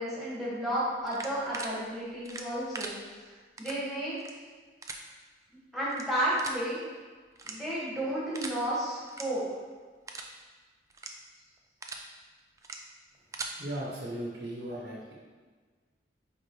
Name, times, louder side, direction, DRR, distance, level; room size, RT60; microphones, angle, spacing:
voice 1, 0.0-2.9 3.6-4.2 5.7-6.8 7.4-9.4, right 1 dB, ahead, -9 dB, 2.0 m, -32 dB
sound 1, 1.1-1.7 2.2-2.9 3.6-3.8 4.1-4.3 4.8-5.0 5.9-6.0 6.4-6.6 7.4-7.8 8.3-8.6 9.0-9.2 9.6-9.7 10.1-10.3 10.9-11.1 11.6-12.0 12.6-12.8 13.1-13.5, right 3 dB, 20° right, 0.4 m, -40 dB
voice 2, 13.6-15.1, right 1 dB, 60° right, -5 dB, 1.1 m, -37 dB
9.2 x 3.5 x 3.4 m, 1.4 s
head